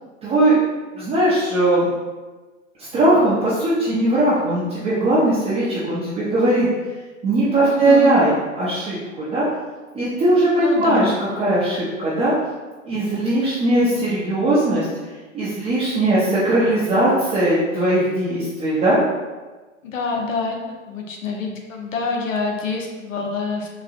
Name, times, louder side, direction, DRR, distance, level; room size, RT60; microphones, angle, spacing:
voice 1, 0.2-0.6 1.0-1.9 2.9-6.7 7.2-9.0 9.3-9.5 9.9-11.1 11.4-12.3 12.8-14.9 15.3-19.0, right 1 dB, 15° right, -10 dB, 0.6 m, -19 dB
voice 2, 7.7-8.2 10.6-11.1 19.8-20.6 20.9-23.7, left 3 dB, 75° left, 1 dB, 0.8 m, -26 dB
4.0 x 2.6 x 2.5 m, 1.3 s
hypercardioid pair, 110°, 40 cm